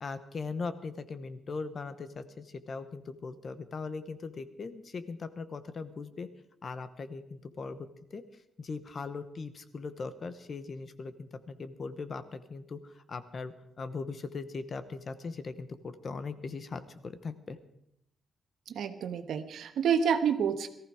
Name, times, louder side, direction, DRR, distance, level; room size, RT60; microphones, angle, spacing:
voice 1, 0.0-6.3 6.6-8.2 8.6-12.8 13.1-17.6, left 4 dB, 40° left, 12 dB, 1.0 m, -39 dB
voice 2, 18.7-20.7, right 7 dB, 80° right, 8 dB, 1.3 m, -28 dB
18.5 x 14.5 x 4.9 m, 0.78 s
cardioid pair, 140°, 0 cm